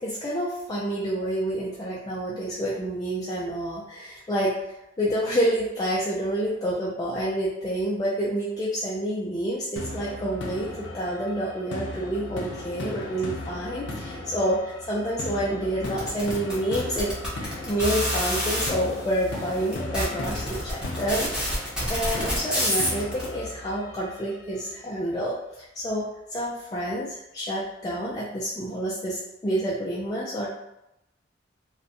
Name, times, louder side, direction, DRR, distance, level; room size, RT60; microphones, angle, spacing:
voice 1, 0.0-4.5 5.0-30.5, right 1 dB, 20° left, -6 dB, 0.3 m, -28 dB
sound 1, 9.8-24.7, left 2 dB, 85° left, 0.4 m, -37 dB
sound 2, 15.9-18.7 19.4-19.5 19.7-23.2, equal, 5° right, 0.7 m, -27 dB
2.5 x 2.1 x 2.5 m, 0.86 s
head